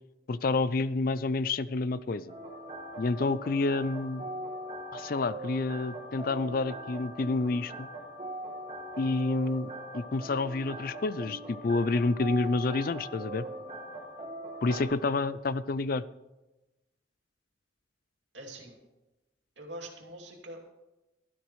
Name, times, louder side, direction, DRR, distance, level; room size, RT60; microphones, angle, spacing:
voice 1, 0.3-2.3 3.0-4.2 4.9-7.9 9.0-13.5 14.6-16.0, left 3 dB, 50° left, 16 dB, 0.4 m, -29 dB
sound 1, 2.3-14.8, right 1 dB, 35° right, 2.1 m, -41 dB
voice 2, 14.7-15.0 18.3-18.8 19.6-20.7, right 1 dB, 85° right, 1 dB, 2.7 m, -44 dB
15.5 x 12.5 x 3.2 m, 1.0 s
head